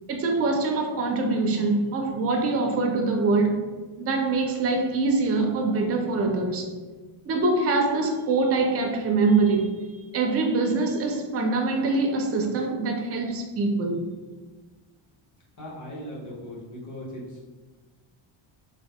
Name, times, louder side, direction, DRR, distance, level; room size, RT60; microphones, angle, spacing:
voice 1, 0.1-3.7 4.0-6.7 7.3-9.7 10.1-14.0, right 3 dB, 35° right, 2 dB, 0.4 m, -24 dB
voice 2, 15.6-17.2, equal, 35° left, -6 dB, 1.1 m, -38 dB
3.1 x 2.1 x 3.5 m, 1.3 s
cardioid pair, 150°, 50 cm